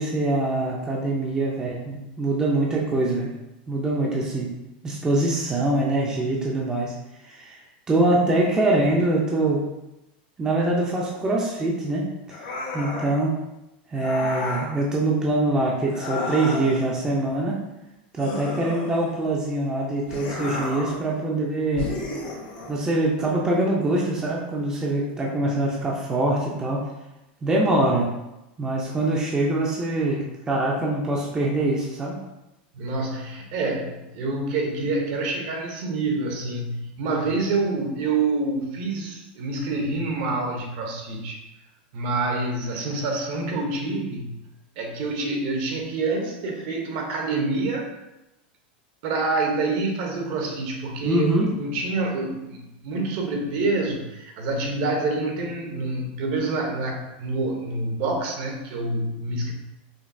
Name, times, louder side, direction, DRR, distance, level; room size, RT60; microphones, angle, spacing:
voice 1, 0.0-3.3 3.7-4.5 4.8-6.9 7.2-9.6 10.4-12.1 12.7-13.4 13.9-17.6 18.1-21.9 22.7-26.9 27.4-28.1 28.6-32.2 51.0-51.5, right 2 dB, 15° right, -3 dB, 0.5 m, -24 dB
sound 1, 12.3-13.2 14.0-14.7 15.9-16.9 18.2-19.3 20.1-21.0 21.8-22.8, left 2 dB, 60° left, 1.3 m, -32 dB
voice 2, 32.7-41.4 41.9-44.3 44.8-47.9 49.0-59.5, right 3 dB, 50° right, 2 dB, 0.9 m, -27 dB
5.1 x 2.7 x 2.6 m, 0.94 s
supercardioid pair, 150°, 5 cm